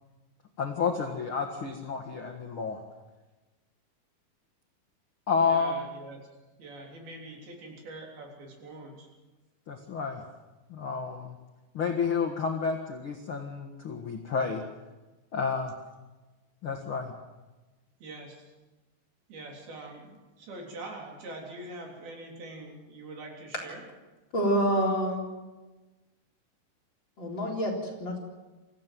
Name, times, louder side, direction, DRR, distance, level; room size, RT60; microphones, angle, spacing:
voice 1, 0.6-2.8 5.3-5.7 9.7-10.2 10.7-11.4 11.7-14.6 15.3-15.7 16.6-17.1, left 5 dB, 50° left, 2 dB, 1.7 m, -30 dB
voice 2, 5.4-6.2 6.6-9.1 18.0-18.5 19.3-23.8, right 2 dB, 70° right, 0 dB, 5.4 m, -44 dB
voice 3, 24.3-25.2 27.2-27.7 28.0-28.2, equal, 30° left, -2 dB, 4.4 m, -26 dB
25.0 x 15.0 x 7.6 m, 1.2 s
omnidirectional pair, 4.5 m